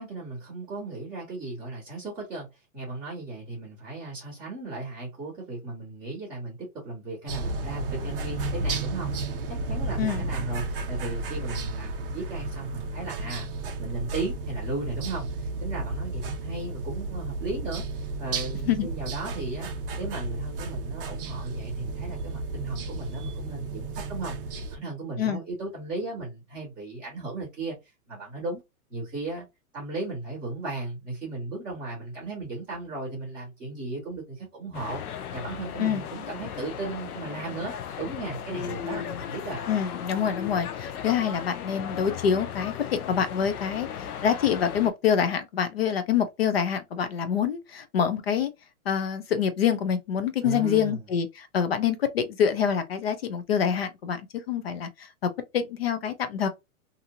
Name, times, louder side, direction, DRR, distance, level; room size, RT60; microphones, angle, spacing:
voice 1, 0.0-9.1 9.5-13.5 13.8-19.7 20.0-27.7 28.1-28.6 28.9-29.4 29.7-35.0 35.3-39.6 50.4-51.1, right 3 dB, ahead, 0.7 m, -36 dB
sound 1, 7.3-24.8, right 3 dB, 40° right, 0.5 m, -33 dB
sound 2, 34.7-44.9, left 8 dB, 85° left, 0.7 m, -36 dB
voice 2, 39.7-43.9 44.2-48.5 48.9-54.2 54.5-56.5, left 8 dB, 45° left, 0.4 m, -26 dB
2.7 x 2.6 x 2.5 m
hypercardioid pair, 175°, 43 cm